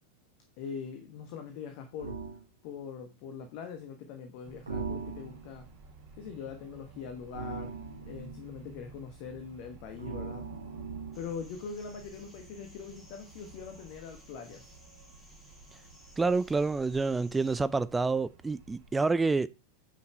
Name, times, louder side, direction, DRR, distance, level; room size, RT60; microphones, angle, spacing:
voice 1, 0.6-2.2 2.6-5.7 6.2-10.5 11.1-14.7, left 6 dB, 45° left, 1.3 m, -42 dB
sound 1, 2.0-2.4 4.7-5.6 7.3-8.4 10.0-11.4, right 4 dB, 75° right, 1.3 m, -39 dB
sound 2, 4.4-18.9, right 3 dB, 55° right, 3.6 m, -54 dB
sound 3, 11.1-17.6, equal, 10° left, 3.1 m, -58 dB
voice 2, 16.2-19.5, right 3 dB, 10° right, 0.4 m, -28 dB
8.9 x 5.8 x 4.4 m
figure-of-eight pair, 90°, 0 cm